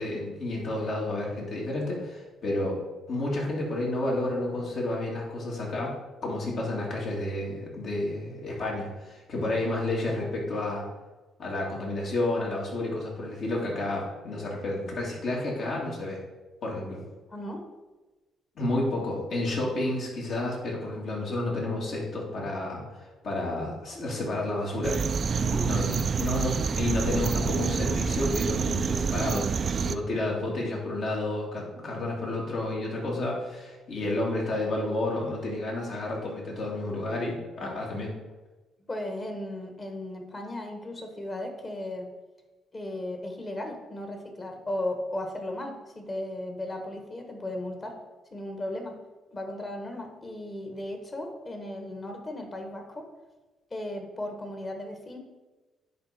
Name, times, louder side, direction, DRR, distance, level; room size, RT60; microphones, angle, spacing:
voice 1, 0.0-2.8 3.1-6.0 6.2-10.9 11.4-16.2 16.6-17.0 18.6-25.0 25.6-38.1, left 2 dB, 65° left, -3 dB, 2.5 m, -30 dB
voice 2, 17.3-17.6 25.4-25.7 37.6-37.8 38.9-42.1 42.7-48.0 48.3-49.0 49.3-53.1 53.7-55.2, left 1 dB, 30° left, 4 dB, 1.5 m, -36 dB
sound 1, 24.8-30.0, right 6 dB, 50° right, 0.3 m, -27 dB
10.0 x 3.7 x 4.4 m, 1.2 s
cardioid pair, 90°, 0 cm